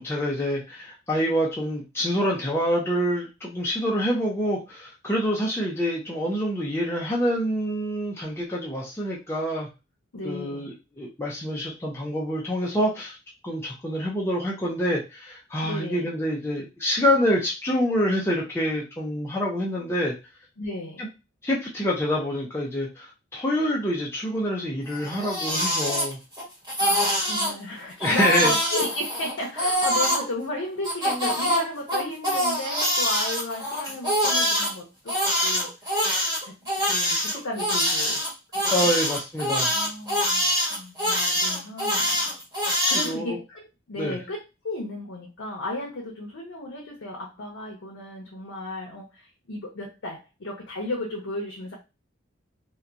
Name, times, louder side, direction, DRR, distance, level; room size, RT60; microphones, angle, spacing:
voice 1, 0.0-9.7 10.2-13.2 13.4-20.1 21.0-21.1 21.4-26.2 28.0-28.5 31.1-31.2 38.7-39.8 42.6-43.4 44.0-44.2, equal, 10° left, -3 dB, 0.4 m, -26 dB
voice 2, 10.1-10.7 15.6-16.1 20.6-21.0 26.8-35.7 36.4-38.3 38.5-38.9 39.7-42.2 42.9-51.7, left 2 dB, 75° left, -1 dB, 0.7 m, -34 dB
Crying sobbing, 24.9-26.4 26.7-27.5 28.0-30.2 30.8-34.7 35.1-43.1, equal, 15° right, 1.2 m, -24 dB
2.8 x 2.2 x 2.4 m, 0.27 s
head